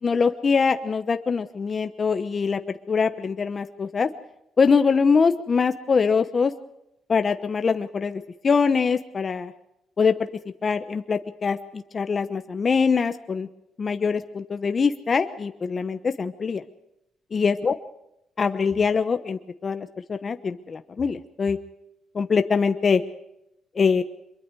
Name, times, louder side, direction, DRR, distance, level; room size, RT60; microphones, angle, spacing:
voice 1, 0.0-2.6 2.9-4.1 4.6-6.5 7.1-9.5 10.0-10.1 10.6-13.5 13.8-16.6 17.3-17.7 18.4-21.6 22.1-23.0 23.7-24.0, left 5 dB, 40° left, 9 dB, 1.0 m, -23 dB
24.5 x 22.5 x 4.8 m, 0.85 s
cardioid pair, 90°, 0 cm